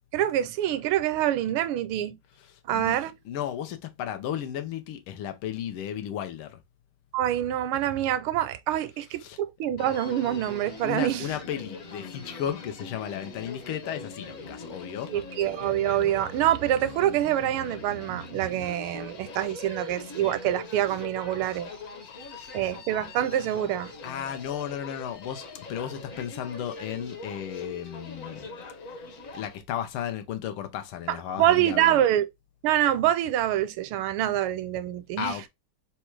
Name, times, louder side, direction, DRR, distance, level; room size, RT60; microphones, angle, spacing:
voice 1, 0.1-2.2 2.6-3.1 7.1-11.3 15.1-21.7 22.5-23.9 31.1-32.3 32.6-35.4, right 12 dB, 85° right, 1.4 m, -26 dB
voice 2, 2.5-6.6 9.2-9.4 10.8-15.1 24.0-28.5 28.8-32.0 35.2-35.5, left 10 dB, 85° left, 1.6 m, -34 dB
Human voice, 9.8-29.6, left 3 dB, 50° left, 1.1 m, -42 dB
4.2 x 2.3 x 4.4 m
omnidirectional pair, 2.3 m